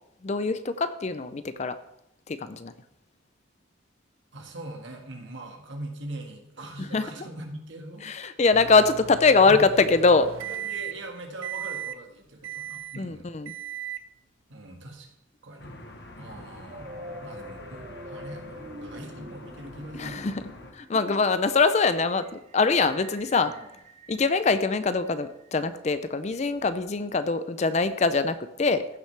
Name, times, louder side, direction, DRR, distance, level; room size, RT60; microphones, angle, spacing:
voice 1, 0.2-1.8 2.3-2.7 6.9-7.0 8.0-10.3 13.0-13.5 19.9-20.4 20.7-23.5 24.1-28.9, left 4 dB, 35° left, 12 dB, 0.4 m, -23 dB
voice 2, 4.3-8.4 9.4-9.6 10.5-13.3 14.5-15.1 15.4-15.7 16.2-16.9 17.2-20.4 21.1-21.2 23.4-23.7, right 1 dB, 70° right, 2 dB, 1.7 m, -41 dB
Microwave oven, 8.5-11.1 11.4-12.0 12.4-13.0 13.5-14.1, right 10 dB, 85° right, 0.5 m, -37 dB
sound 1, 15.6-20.7, left 1 dB, 55° left, 1.0 m, -45 dB
sound 2, 16.7-25.7, equal, 30° right, 0.4 m, -46 dB
15.0 x 6.1 x 3.3 m, 0.81 s
head